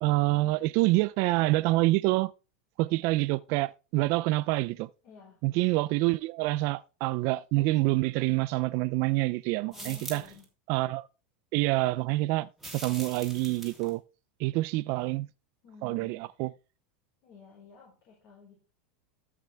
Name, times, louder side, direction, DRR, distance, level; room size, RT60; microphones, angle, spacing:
voice 1, 0.0-2.3 2.8-4.9 5.4-10.2 10.7-11.1 11.5-14.0 14.4-15.3 15.8-16.5, right 20 dB, 50° right, 0.4 m, -27 dB
voice 2, 5.0-5.4 9.7-10.4 15.6-16.1 17.2-18.7, left 4 dB, 45° left, 4.8 m, -52 dB
sound 1, 9.7-10.4 12.6-13.9, right 2 dB, ahead, 3.0 m, -43 dB
13.5 x 5.8 x 3.4 m
supercardioid pair, 130°, 6 cm